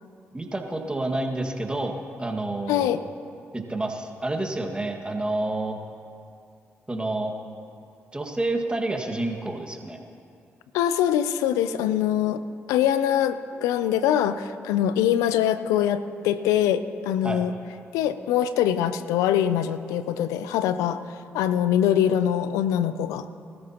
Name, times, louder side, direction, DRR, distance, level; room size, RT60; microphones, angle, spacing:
voice 1, 0.3-3.0 3.5-5.8 6.9-7.3 8.1-10.0 17.2-17.4, right 2 dB, 20° right, 2 dB, 1.9 m, -29 dB
voice 2, 2.7-3.0 10.7-12.4 12.7-17.5 17.9-21.0 21.3-23.3, left 10 dB, 90° left, 13 dB, 0.5 m, -23 dB
20.0 x 14.0 x 3.0 m, 2.5 s
supercardioid pair, 50°, 5 cm